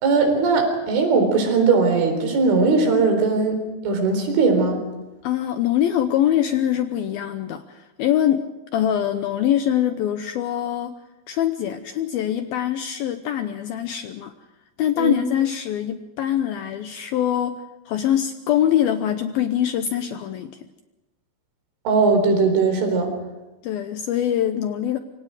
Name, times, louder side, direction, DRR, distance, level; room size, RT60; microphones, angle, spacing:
voice 1, 0.0-4.8 15.0-15.2 21.9-23.1, right 4 dB, 80° right, 5 dB, 6.5 m, -19 dB
voice 2, 5.2-8.4 8.7-10.9 11.3-14.3 14.8-20.6 23.6-25.0, left 10 dB, 80° left, 8 dB, 2.1 m, -23 dB
27.5 x 25.5 x 4.9 m, 1.0 s
omnidirectional pair, 5.4 m